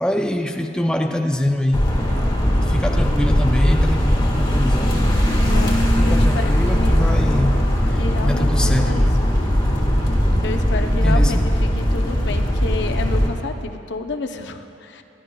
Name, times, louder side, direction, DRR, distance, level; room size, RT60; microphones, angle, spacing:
voice 1, 0.0-1.9 2.6-5.0 5.9-9.2 11.0-11.4, left 1 dB, 5° left, 4 dB, 0.4 m, -24 dB
sound 1, 1.7-13.3, equal, 25° left, 1.5 m, -18 dB
voice 2, 5.5-7.2 8.0-9.3 10.4-15.0, left 3 dB, 65° left, 6 dB, 0.6 m, -30 dB
26.5 x 11.0 x 2.3 m, 2.7 s
head